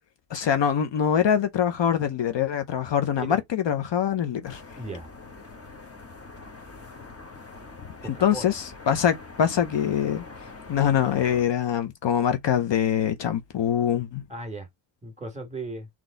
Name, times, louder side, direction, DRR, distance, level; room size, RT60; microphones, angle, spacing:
voice 1, 0.3-4.6 8.2-10.2 10.7-14.2, left 9 dB, 60° left, 0.8 m, -24 dB
sound 1, 4.4-11.4, left 3 dB, 30° left, 1.2 m, -44 dB
voice 2, 4.8-5.1 8.0-8.5 14.3-14.7 15.0-15.9, right 2 dB, 15° right, 1.9 m, -36 dB
4.0 x 3.1 x 3.8 m
wide cardioid pair, 105°, 48 cm